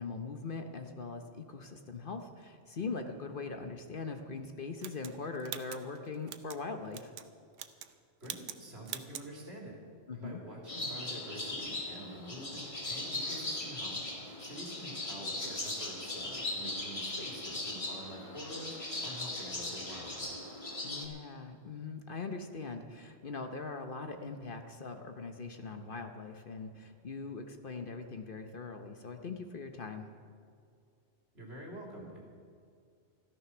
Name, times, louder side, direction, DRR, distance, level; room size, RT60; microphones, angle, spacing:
voice 1, 0.0-7.1 10.1-10.4 20.8-30.1, left 4 dB, 50° left, 6 dB, 1.0 m, -41 dB
sound 1, 4.8-6.6 6.9-7.3 7.5-7.9 8.2-8.6 8.8-9.3, right 9 dB, 90° right, 1.0 m, -43 dB
voice 2, 8.2-9.8 10.1-14.0 14.4-20.3 31.3-32.2, right 1 dB, 60° right, -2 dB, 3.5 m, -47 dB
sound 2, 10.7-21.0, left 2 dB, 30° left, 1.6 m, -39 dB
14.0 x 13.0 x 6.0 m, 2.3 s
omnidirectional pair, 1.2 m